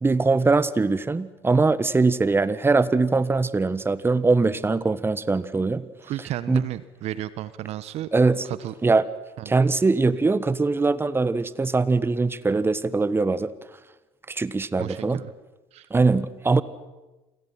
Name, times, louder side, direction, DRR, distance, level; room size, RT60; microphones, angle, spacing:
voice 1, 0.0-5.8 6.5-6.7 8.1-8.4 8.8-9.0 9.4-13.5 14.3-15.2 15.9-16.6, right 3 dB, 20° right, 15 dB, 1.5 m, -22 dB
voice 2, 6.0-8.1 8.4-8.7 9.4-9.5 14.8-15.3 15.7-15.9, right 13 dB, 55° right, 16 dB, 1.1 m, -33 dB
29.5 x 26.5 x 5.9 m, 1.1 s
hypercardioid pair, 65°, 13 cm